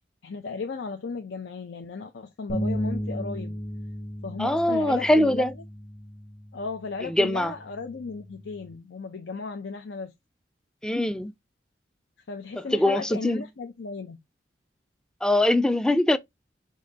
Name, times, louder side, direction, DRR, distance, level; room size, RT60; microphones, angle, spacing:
voice 1, 0.2-3.6 4.2-5.5 6.5-10.1 12.3-14.2, left 4 dB, 80° left, 0.6 m, -35 dB
sound 1, 2.5-8.7, equal, 50° left, 1.1 m, -35 dB
voice 2, 4.4-5.5 7.1-7.5 10.8-11.3 12.6-13.4 15.2-16.2, left 1 dB, 5° left, 0.3 m, -22 dB
5.0 x 2.7 x 3.9 m
head